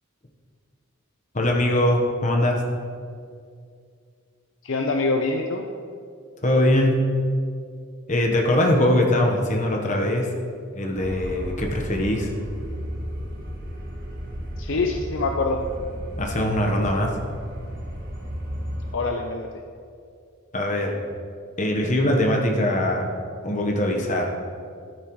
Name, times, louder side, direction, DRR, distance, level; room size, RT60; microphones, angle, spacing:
voice 1, 1.3-2.6 6.4-7.1 8.1-10.3 10.7-12.3 16.2-17.1 20.5-21.0 21.6-23.1 23.4-24.3, left 1 dB, 35° left, 1 dB, 1.2 m, -22 dB
voice 2, 4.6-5.6 14.6-15.6 18.9-19.5, left 3 dB, 60° left, 3 dB, 0.6 m, -24 dB
sound 1, 10.9-18.9, equal, 45° right, 2.0 m, -33 dB
12.5 x 9.4 x 3.2 m, 2.3 s
head